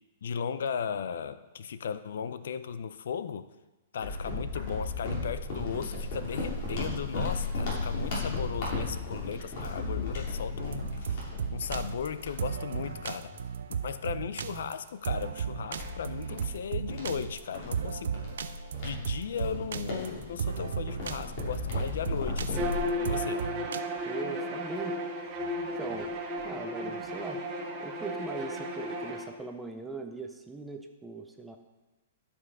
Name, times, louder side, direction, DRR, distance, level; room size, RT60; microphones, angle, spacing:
voice 1, 0.2-3.5 3.9-11.2 11.5-13.3 13.8-23.5, left 7 dB, 70° left, 13 dB, 0.5 m, -36 dB
sound 1, 4.0-13.9 14.4-14.5 15.1-22.8, left 3 dB, 40° left, 2.8 m, -36 dB
sound 2, 10.6-23.8, right 7 dB, 75° right, 0.5 m, -35 dB
Bowed string instrument, 22.5-29.2, equal, 25° right, 1.1 m, -34 dB
voice 2, 24.1-25.0 25.8-26.1 26.4-27.4 27.8-31.6, right 3 dB, 5° right, 5 dB, 0.5 m, -40 dB
11.5 x 5.3 x 4.8 m, 1.1 s
hypercardioid pair, 170°, 0 cm